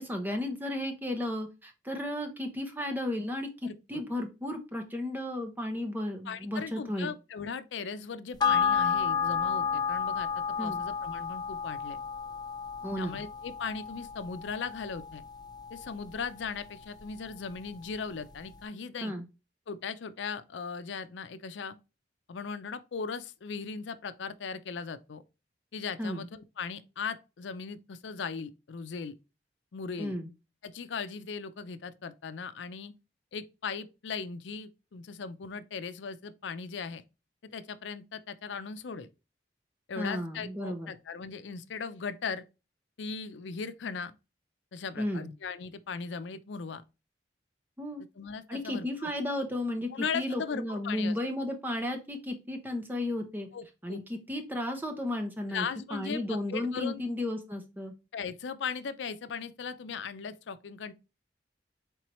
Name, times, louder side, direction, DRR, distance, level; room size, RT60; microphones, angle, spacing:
voice 1, 0.0-7.1 10.6-10.8 12.8-13.2 19.0-19.2 26.0-26.2 30.0-30.3 40.0-40.9 45.0-45.3 47.8-48.0 48.5-53.5 53.8-55.7 55.9-57.9, left 1 dB, 10° right, 0.8 m, -34 dB
voice 2, 3.6-4.0 6.3-10.3 10.6-12.0 13.0-15.2 15.7-19.1 19.7-21.8 22.3-25.2 25.7-29.1 29.7-30.2 30.6-32.9 33.3-37.0 37.4-39.1 39.9-42.4 43.0-44.1 44.7-46.8 48.2-49.1 49.9-51.2 53.5-54.0 55.5-57.0 58.1-60.9, left 5 dB, 85° left, 0.5 m, -38 dB
sound 1, 8.4-17.2 17.5-17.6, left 7 dB, 20° left, 0.4 m, -32 dB
4.5 x 3.8 x 3.0 m
head